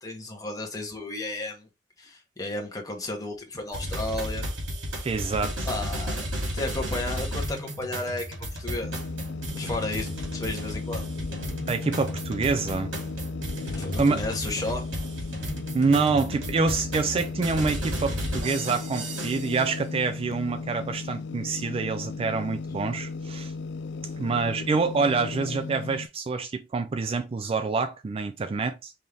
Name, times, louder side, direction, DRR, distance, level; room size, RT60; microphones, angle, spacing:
voice 1, 0.0-1.7 2.0-4.5 5.7-6.3 6.5-9.0 9.5-11.0 13.6-14.9, left 2 dB, 20° left, 1.2 m, -33 dB
sound 1, 3.7-19.6, equal, 85° right, 2.5 m, -34 dB
voice 2, 5.0-5.7 11.7-12.9 14.0-14.2 15.7-23.5 24.2-28.9, right 4 dB, 30° right, 0.3 m, -26 dB
sound 2, 8.8-26.1, left 4 dB, 65° left, 0.4 m, -36 dB
5.5 x 2.8 x 3.3 m
head